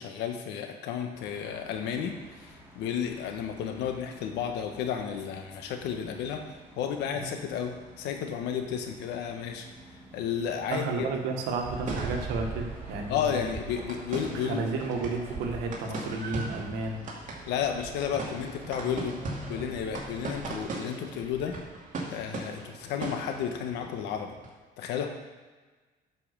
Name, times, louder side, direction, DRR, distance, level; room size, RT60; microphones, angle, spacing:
voice 1, 0.0-6.4 6.8-9.7 10.1-11.1 13.1-14.6 17.5-19.2 19.5-21.5 22.1-24.3 24.8-25.1, left 8 dB, 90° left, 4 dB, 1.3 m, -32 dB
sound 1, 1.1-20.7, equal, 10° right, 2.4 m, -49 dB
voice 2, 10.7-13.5 14.3-17.0, right 3 dB, 90° right, 2 dB, 1.7 m, -32 dB
sound 2, 11.6-24.5, right 3 dB, 50° right, 2.3 m, -39 dB
9.4 x 5.6 x 6.8 m, 1.3 s
cardioid pair, 110°, 17 cm